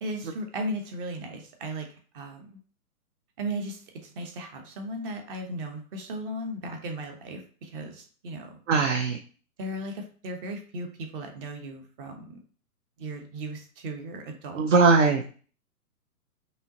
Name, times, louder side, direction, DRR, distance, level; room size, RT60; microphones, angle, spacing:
voice 1, 0.0-2.6 3.4-8.6 9.6-12.4 13.0-14.8, right 1 dB, 35° right, 4 dB, 1.1 m, -36 dB
voice 2, 8.7-9.2 14.6-15.4, right 4 dB, 50° right, 4 dB, 0.7 m, -20 dB
5.4 x 3.0 x 2.9 m, 0.41 s
hypercardioid pair, 130°, 47 cm